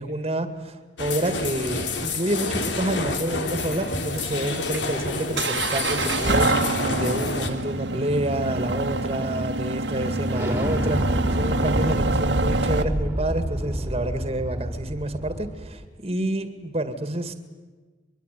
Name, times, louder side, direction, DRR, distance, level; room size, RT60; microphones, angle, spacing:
voice 1, 0.0-17.3, right 1 dB, 30° right, 9 dB, 2.1 m, -28 dB
sound 1, 1.0-7.5, left 3 dB, 75° left, 3.2 m, -29 dB
sound 2, 3.7-12.8, right 2 dB, 70° right, 1.9 m, -26 dB
Explosion, 10.3-15.8, equal, 10° right, 2.4 m, -29 dB
23.5 x 23.5 x 9.3 m, 1.3 s
head